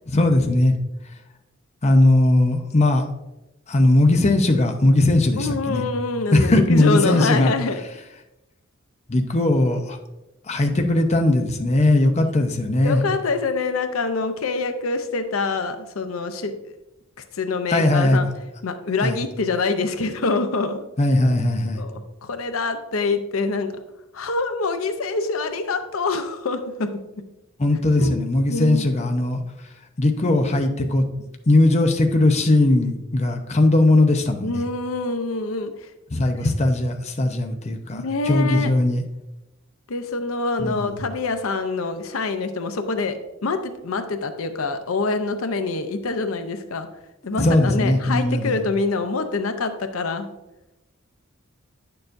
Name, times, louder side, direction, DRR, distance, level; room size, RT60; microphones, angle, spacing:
voice 1, 0.1-0.7 1.8-3.0 3.7-5.8 6.3-7.5 9.1-10.0 10.5-13.0 17.7-18.2 19.0-19.2 21.0-21.8 27.6-29.4 30.0-31.1 31.5-34.6 36.1-39.0 40.6-41.0 47.4-48.5, left 2 dB, 35° left, 4 dB, 0.7 m, -19 dB
voice 2, 5.4-7.8 12.8-16.5 17.3-18.3 18.6-20.8 21.3-21.4 21.7-23.7 24.1-26.9 27.9-28.2 28.5-28.9 34.4-35.9 36.3-36.5 37.9-38.7 39.9-46.9 47.3-50.3, left 3 dB, 85° left, 8 dB, 0.7 m, -25 dB
9.6 x 6.7 x 2.6 m, 0.95 s
head